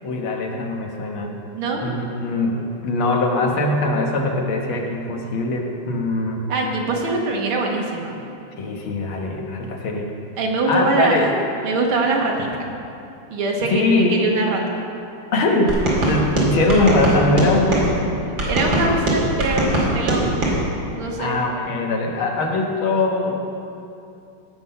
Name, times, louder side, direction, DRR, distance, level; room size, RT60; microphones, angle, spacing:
voice 1, 0.0-1.4 1.8-6.5 8.6-10.1 10.7-11.3 13.6-14.2 15.3-15.8 16.1-18.1 21.2-23.5, left 2 dB, 75° left, 1 dB, 2.1 m, -21 dB
voice 2, 1.5-1.8 6.5-8.2 10.4-11.3 11.6-12.7 13.3-13.8 14.1-14.7 18.4-20.4 20.9-21.4, right 2 dB, 85° right, 0 dB, 2.3 m, -23 dB
sound 1, 15.7-17.9 18.4-20.6, right 2 dB, 65° right, 3.1 m, -21 dB
17.0 x 6.1 x 5.5 m, 2.6 s
omnidirectional pair, 2.3 m